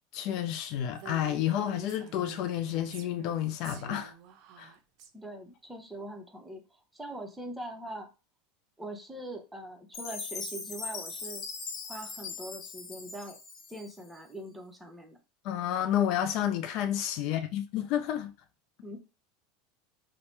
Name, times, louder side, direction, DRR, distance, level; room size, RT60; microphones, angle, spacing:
voice 1, 0.1-4.1 4.6-4.7 15.4-18.3, left 11 dB, 55° left, 0.3 m, -30 dB
Female speech woman speaking, 0.9-5.1, right 9 dB, 60° right, 0.4 m, -49 dB
voice 2, 5.1-8.1 8.8-11.4 11.9-13.4 13.7-15.2 18.8-19.0, right 1 dB, 10° right, 0.7 m, -42 dB
Chime, 9.9-14.2, left 4 dB, 40° left, 0.8 m, -40 dB
2.8 x 2.0 x 3.2 m
hypercardioid pair, 85°, 0 cm